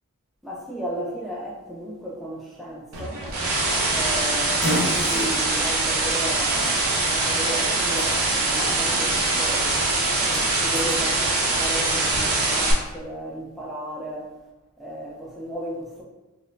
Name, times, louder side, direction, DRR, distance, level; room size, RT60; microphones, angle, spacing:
voice 1, 0.4-3.2 3.9-9.8 10.3-14.3 14.8-16.0, right 1 dB, ahead, -5 dB, 0.5 m, -34 dB
sound 1, 2.9-12.7, right 2 dB, 90° right, 0.8 m, -23 dB
Fart, 3.3-11.0, left 1 dB, 50° left, 1.1 m, -35 dB
5.2 x 2.1 x 2.5 m, 1.1 s
head